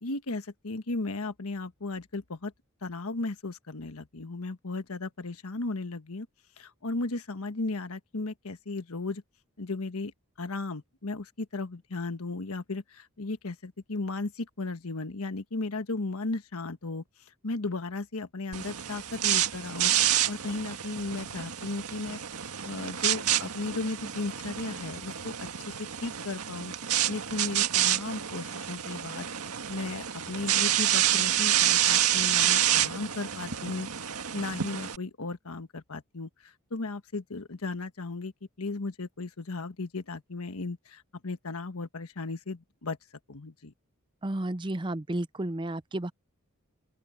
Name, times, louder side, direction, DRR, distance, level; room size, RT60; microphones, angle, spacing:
voice 1, 0.0-2.5 2.8-6.3 6.6-9.2 9.6-10.1 10.4-17.0 17.4-22.2 22.6-25.4 25.7-26.7 27.1-29.3 29.7-33.9 34.3-38.3 38.6-43.0 43.3-43.7, left 3 dB, 80° left, 1.3 m, -35 dB
sound 1, 18.5-35.0, right 11 dB, 90° right, 1.8 m, -28 dB
voice 2, 44.2-46.1, right 1 dB, 20° right, 0.6 m, -32 dB
open air
head